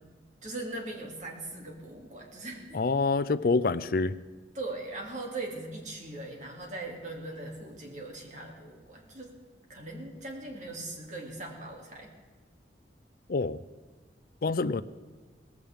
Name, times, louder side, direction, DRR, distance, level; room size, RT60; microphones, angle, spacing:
voice 1, 0.4-2.8 4.5-9.3 9.7-12.1, right 2 dB, 45° right, 0 dB, 2.6 m, -40 dB
voice 2, 2.7-4.1 13.3-13.6 14.4-14.8, left 3 dB, 55° left, 16 dB, 0.5 m, -26 dB
18.5 x 15.5 x 3.6 m, 1.4 s
head